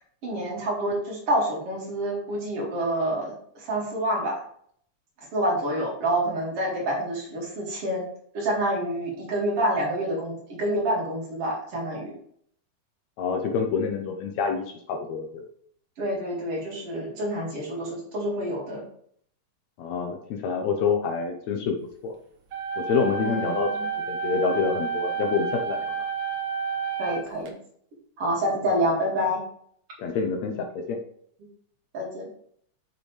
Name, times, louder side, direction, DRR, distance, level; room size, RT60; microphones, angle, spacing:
voice 1, 0.2-4.4 5.3-8.0 8.3-12.1 16.0-18.8 23.2-23.9 27.0-27.5 28.2-29.4 31.9-32.2, right 1 dB, 50° right, -3 dB, 2.9 m, -27 dB
voice 2, 13.2-15.4 19.8-21.8 22.0-22.1 22.8-25.9 30.0-31.0, left 5 dB, 70° left, 4 dB, 1.9 m, -27 dB
sound 1, 22.5-27.5, right 6 dB, 65° right, 1.2 m, -30 dB
7.5 x 6.8 x 3.3 m, 0.64 s
omnidirectional pair, 3.6 m